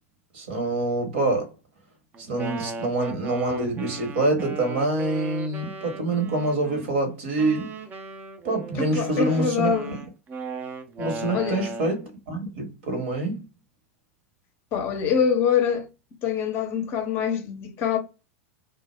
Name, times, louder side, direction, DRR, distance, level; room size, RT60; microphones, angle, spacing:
voice 1, 0.3-1.5 2.2-7.7 8.4-9.7 11.0-13.4, right 2 dB, 55° right, 1.0 m, -26 dB
Wind instrument woodwind instrument, 2.1-6.9 7.4-12.1, right 3 dB, 25° right, 0.4 m, -37 dB
voice 2, 8.8-10.0 11.3-11.6 14.7-15.9 16.2-18.0, left 7 dB, 35° left, 0.6 m, -24 dB
2.1 x 2.0 x 3.1 m
figure-of-eight pair, 90°, 7 cm